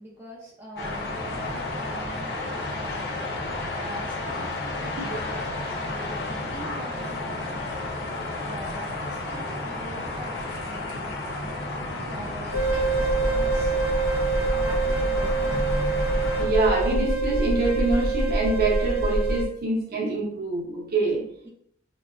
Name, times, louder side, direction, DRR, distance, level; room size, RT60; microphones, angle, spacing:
voice 1, 0.0-3.1 3.8-11.6 12.0-13.8 14.5-15.9 21.4-21.5, equal, 10° right, -4 dB, 0.4 m, -43 dB
sound 1, 0.8-16.5, left 2 dB, 55° left, 0.7 m, -32 dB
sound 2, 12.5-19.4, right 2 dB, 85° right, 0.7 m, -24 dB
voice 2, 16.4-21.3, right 2 dB, 50° right, -1 dB, 0.7 m, -25 dB
3.8 x 2.2 x 2.3 m, 0.72 s
head